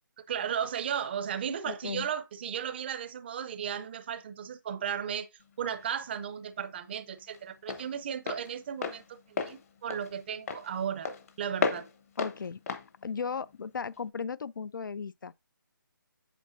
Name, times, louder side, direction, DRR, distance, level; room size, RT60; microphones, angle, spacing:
voice 1, 0.3-5.3 5.6-11.1 11.4-11.8, right 8 dB, 30° right, 0.5 m, -35 dB
voice 2, 1.7-2.1 12.2-12.6 13.0-15.3, left 5 dB, 70° left, 0.4 m, -36 dB
Walk footsteps, 5.4-14.1, left 5 dB, 45° left, 0.9 m, -36 dB
8.2 x 6.4 x 2.6 m
figure-of-eight pair, 150°, 11 cm